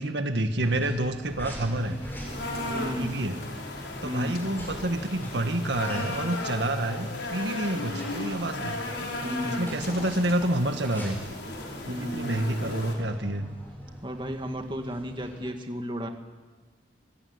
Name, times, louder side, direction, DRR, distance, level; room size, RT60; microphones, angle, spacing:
voice 1, 0.0-2.0 2.6-3.4 4.0-8.8 9.4-11.2 11.8-13.5, right 1 dB, 75° right, 7 dB, 1.8 m, -28 dB
sound 1, 0.6-15.5, equal, 10° left, 7.8 m, -42 dB
sound 2, 1.7-12.9, left 2 dB, 80° left, 5.3 m, -36 dB
sound 3, 2.2-4.0 4.3-4.6 5.7-8.9 9.8-11.2, left 4 dB, 55° left, 3.8 m, -46 dB
voice 2, 2.7-3.2 4.0-4.4 9.0-9.9 11.9-12.5 14.0-16.1, equal, 25° right, 5 dB, 2.1 m, -34 dB
25.5 x 21.5 x 9.8 m, 1.4 s
head